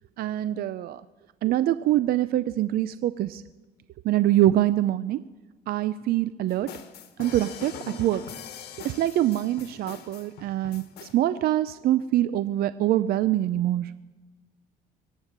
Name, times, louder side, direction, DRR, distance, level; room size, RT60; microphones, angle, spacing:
voice 1, 0.2-1.0 1.4-3.4 4.0-5.2 5.7-6.7 7.2-8.2 8.8-13.9, right 13 dB, 65° right, 14 dB, 0.5 m, -24 dB
sound 1, 6.5-11.2, left 7 dB, 75° left, 1.6 m, -42 dB
24.0 x 9.1 x 6.6 m, 1.2 s
cardioid pair, 110°, 17 cm